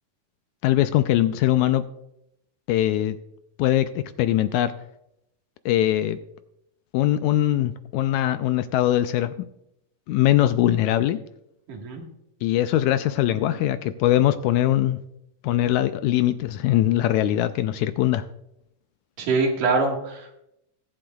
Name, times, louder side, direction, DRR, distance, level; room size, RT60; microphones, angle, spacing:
voice 1, 0.6-1.8 2.7-3.2 3.6-4.7 5.7-6.2 6.9-9.3 10.1-11.2 12.4-15.0 15.4-18.2, left 13 dB, 80° left, 11 dB, 1.8 m, -21 dB
voice 2, 11.7-12.0 19.2-20.4, right 3 dB, 80° right, 1 dB, 3.2 m, -24 dB
22.5 x 7.8 x 2.3 m, 0.80 s
omnidirectional pair, 3.6 m